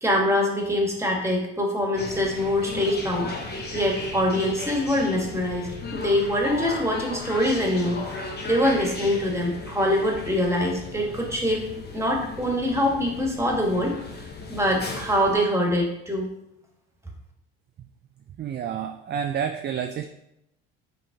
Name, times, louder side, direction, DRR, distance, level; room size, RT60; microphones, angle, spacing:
voice 1, 0.0-3.3 3.7-8.0 8.4-11.6 11.9-13.9 14.5-16.3, equal, 10° right, 0 dB, 1.5 m, -24 dB
sound 1, 2.0-15.4, left 3 dB, 35° left, 1.0 m, -36 dB
voice 2, 18.4-20.1, right 8 dB, 35° right, 6 dB, 0.4 m, -29 dB
5.3 x 3.5 x 2.8 m, 0.84 s
hypercardioid pair, 65°, 30 cm